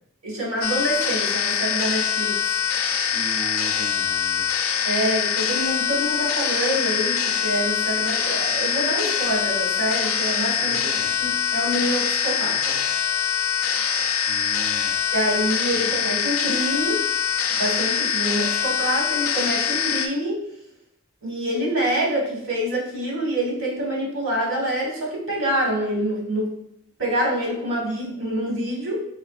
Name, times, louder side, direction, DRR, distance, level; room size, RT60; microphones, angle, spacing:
voice 1, 0.2-2.4 4.8-10.8 11.2-12.8 15.1-17.0 17.5-20.4 21.2-26.5 27.0-29.0, right 1 dB, 65° right, -2 dB, 1.2 m, -26 dB
sound 1, 0.6-20.1, left 8 dB, 75° left, 0.4 m, -24 dB
voice 2, 3.1-4.5 10.6-11.1 14.3-15.0 15.7-15.9, right 1 dB, 40° right, -2 dB, 0.3 m, -38 dB
4.2 x 3.2 x 2.3 m, 0.75 s
head